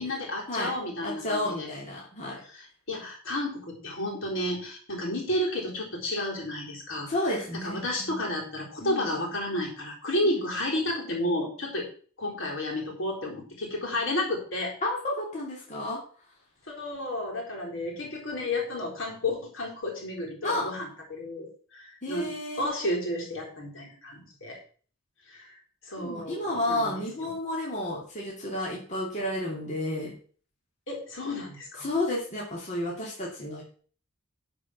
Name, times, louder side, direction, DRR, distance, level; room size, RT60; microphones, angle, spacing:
voice 1, 0.0-1.7 2.5-7.1 7.6-11.9 12.2-14.7 16.7-22.3 22.6-24.6 25.3-25.5 25.8-27.3 30.9-31.9, left 1 dB, 65° left, -1 dB, 3.9 m, -32 dB
voice 2, 1.0-2.4 7.1-8.3 8.8-9.1 10.2-10.4 14.8-16.0 20.4-20.7 22.0-22.7 26.0-30.1 31.8-33.6, left 1 dB, 35° left, -4 dB, 2.7 m, -31 dB
11.5 x 5.4 x 5.9 m, 0.44 s
head